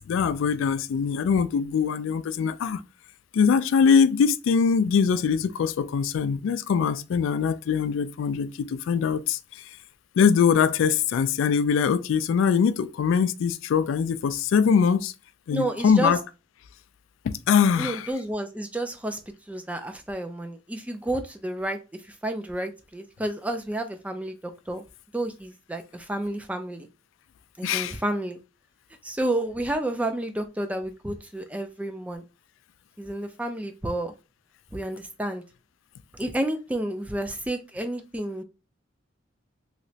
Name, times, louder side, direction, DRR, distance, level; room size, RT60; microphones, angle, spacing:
voice 1, 0.1-2.8 3.3-9.4 10.2-15.1 15.5-16.2 17.2-18.1 27.6-28.0, left 6 dB, 90° left, 0.3 m, -22 dB
voice 2, 15.5-16.1 17.8-19.2 19.5-21.8 22.0-24.4 24.7-24.8 25.1-26.9 27.6-28.4 29.0-32.2 33.0-34.1 34.7-35.4 36.1-38.4, right 1 dB, 5° right, 0.3 m, -30 dB
3.1 x 2.9 x 2.7 m
head